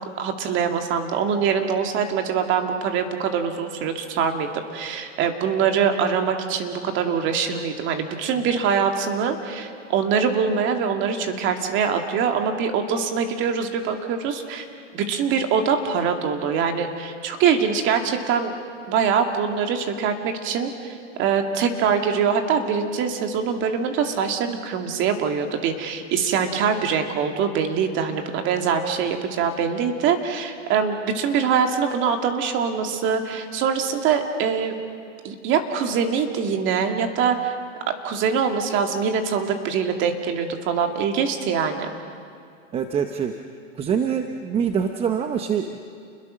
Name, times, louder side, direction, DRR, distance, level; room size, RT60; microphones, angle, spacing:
voice 1, 0.2-14.7 14.9-18.5 18.9-34.7 35.2-37.5 38.0-41.9, right 6 dB, 30° right, 5 dB, 2.4 m, -23 dB
voice 2, 42.7-43.3 43.8-45.8, right 7 dB, 15° right, 6 dB, 0.8 m, -24 dB
29.5 x 21.5 x 6.5 m, 2.4 s
hypercardioid pair, 145°, 38 cm